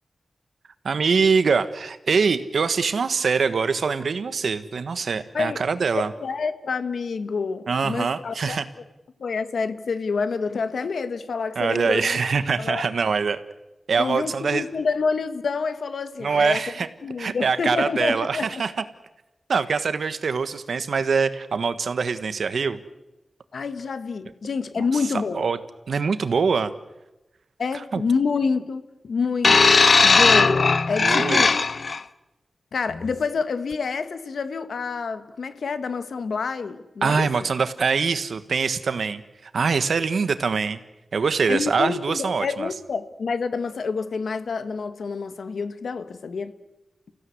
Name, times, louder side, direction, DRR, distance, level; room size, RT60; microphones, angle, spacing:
voice 1, 0.8-6.1 7.7-8.6 11.5-13.4 13.9-14.6 16.2-16.9 17.2-18.7 19.5-22.8 25.3-25.6 25.9-26.7 27.9-28.0 31.0-31.5 37.0-39.2 39.5-40.8 41.1-42.7, right 5 dB, 80° right, 11 dB, 1.4 m, -23 dB
voice 2, 5.9-8.6 9.2-12.2 12.6-12.9 14.0-16.6 17.0-18.6 23.5-25.5 27.6-31.5 32.7-37.3 41.5-46.5, left 5 dB, 85° left, 11 dB, 1.5 m, -27 dB
sound 1, 29.4-32.0 32.9-33.1, left 4 dB, 55° left, 0.8 m, -17 dB
29.5 x 16.5 x 9.7 m, 1.0 s
wide cardioid pair, 95°, 0 cm